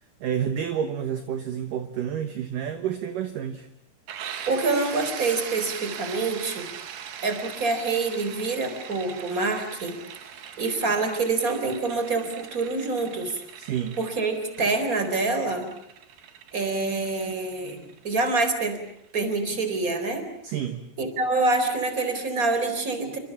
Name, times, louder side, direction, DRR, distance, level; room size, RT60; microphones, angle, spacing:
voice 1, 0.2-3.7 13.6-14.0 20.4-20.9, right 9 dB, 65° right, 8 dB, 2.6 m, -29 dB
sound 1, 4.1-19.7, right 8 dB, 80° right, 4.0 m, -41 dB
voice 2, 4.5-6.6 7.2-10.0 10.6-13.4 14.0-15.7 16.5-18.8 19.1-20.2 21.0-23.2, right 3 dB, 20° right, 8 dB, 4.1 m, -26 dB
28.5 x 26.0 x 7.2 m, 0.75 s
omnidirectional pair, 4.6 m